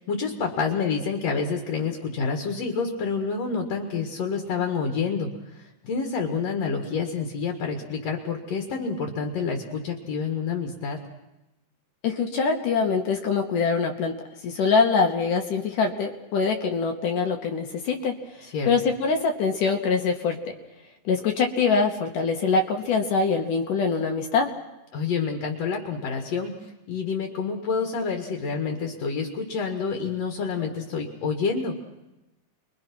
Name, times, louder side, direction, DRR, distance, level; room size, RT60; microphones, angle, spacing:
voice 1, 0.0-11.0 18.5-18.7 24.9-26.5 26.9-31.7, left 5 dB, 55° left, 4 dB, 2.7 m, -28 dB
voice 2, 12.0-18.2 18.6-20.5 21.1-24.5, left 5 dB, 70° left, 4 dB, 2.7 m, -24 dB
29.0 x 22.5 x 6.0 m, 0.96 s
omnidirectional pair, 3.9 m